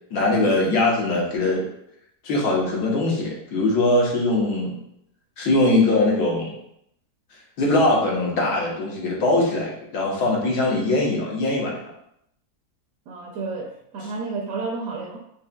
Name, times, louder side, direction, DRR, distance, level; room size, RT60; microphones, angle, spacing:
voice 1, 0.1-1.6 2.2-4.8 5.4-6.5 7.6-11.9, left 2 dB, 80° left, -3 dB, 1.5 m, -21 dB
voice 2, 13.1-15.2, right 4 dB, 65° right, 0 dB, 0.9 m, -31 dB
5.3 x 2.8 x 2.2 m, 0.75 s
omnidirectional pair, 1.7 m